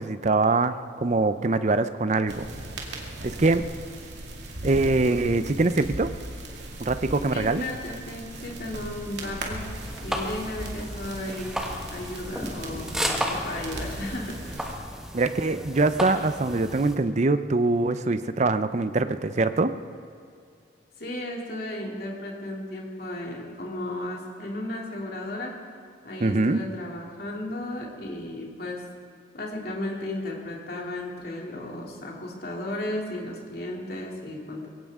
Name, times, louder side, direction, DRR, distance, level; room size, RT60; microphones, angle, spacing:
voice 1, 0.0-2.4 3.2-3.6 4.6-6.1 6.8-7.6 15.1-19.7 26.2-26.6, right 3 dB, 40° right, 11 dB, 0.6 m, -23 dB
sound 1, 2.3-14.7, right 1 dB, 70° right, 2.4 m, -38 dB
voice 2, 7.3-11.6 11.9-14.5 21.0-25.5 26.0-28.8 29.3-34.7, left 1 dB, 55° left, -2 dB, 2.8 m, -34 dB
sound 2, 9.7-17.0, equal, 5° right, 1.4 m, -34 dB
22.0 x 17.0 x 3.7 m, 2.4 s
head